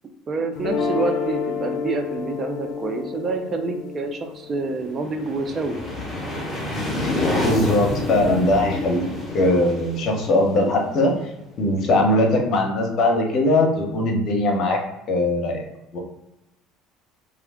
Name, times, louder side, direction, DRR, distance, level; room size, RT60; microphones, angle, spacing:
voice 1, 0.3-5.8, right 3 dB, 35° right, 5 dB, 0.4 m, -27 dB
sound 1, 0.6-6.7, left 6 dB, 75° left, 0.5 m, -30 dB
sound 2, 4.8-11.5, left 1 dB, 20° left, 1.1 m, -28 dB
voice 2, 7.4-9.1 9.3-11.1 11.6-14.8 15.1-15.6 15.9-16.0, left 1 dB, 55° left, 0 dB, 0.9 m, -20 dB
2.4 x 2.2 x 3.5 m, 0.90 s
supercardioid pair, 90°, 0 cm